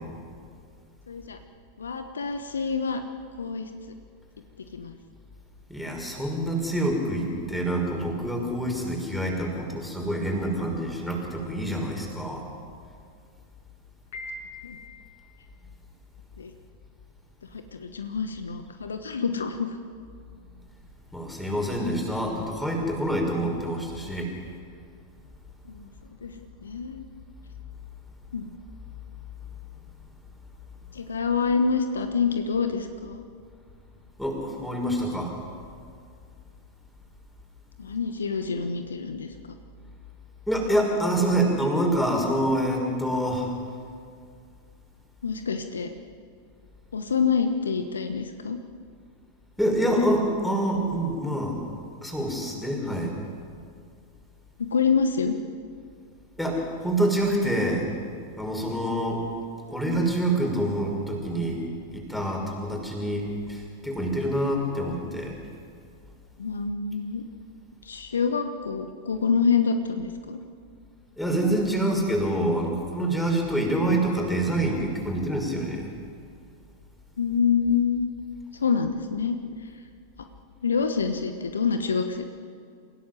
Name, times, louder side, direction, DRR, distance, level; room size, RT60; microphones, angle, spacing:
voice 1, 1.1-1.4 1.8-3.0 3.4-3.7 4.7-4.9 14.6-14.8 16.4-16.5 17.5-19.8 25.7-25.9 26.2-26.3 26.6-27.1 28.3-28.5 30.9-33.2 37.8-39.3 45.2-45.9 46.9-48.6 54.6-55.4 66.4-67.2 67.8-70.4 77.2-78.1 78.5-79.4 80.6-82.2, left 5 dB, 70° left, 8 dB, 1.2 m, -26 dB
voice 2, 5.7-12.4 21.1-24.3 34.2-35.3 40.5-43.5 49.6-51.6 52.0-53.1 56.4-57.9 58.4-59.2 59.7-61.6 61.9-65.4 71.2-75.9, right 1 dB, 5° left, 0 dB, 5.8 m, -26 dB
Piano, 14.1-15.2, left 2 dB, 55° left, 7.1 m, -40 dB
28.0 x 16.0 x 7.8 m, 2.2 s
figure-of-eight pair, 90°, 0 cm